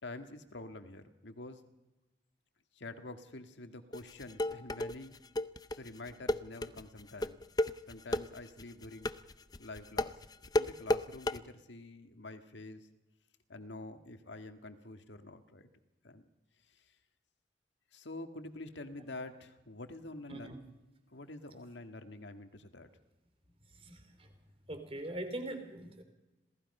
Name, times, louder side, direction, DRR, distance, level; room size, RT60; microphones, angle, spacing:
voice 1, 0.0-1.6 2.8-5.2 5.7-7.4 7.9-9.1 9.6-10.2 10.5-12.9 13.5-15.7 16.0-16.2 16.7-16.9 17.9-20.5 21.1-22.9, left 2 dB, 75° left, 8 dB, 1.8 m, -47 dB
sound 1, 3.9-11.4, left 1 dB, 20° left, 0.6 m, -33 dB
voice 2, 23.7-24.3 24.7-26.0, right 1 dB, 30° right, 7 dB, 3.2 m, -42 dB
27.0 x 18.0 x 5.5 m, 1.0 s
head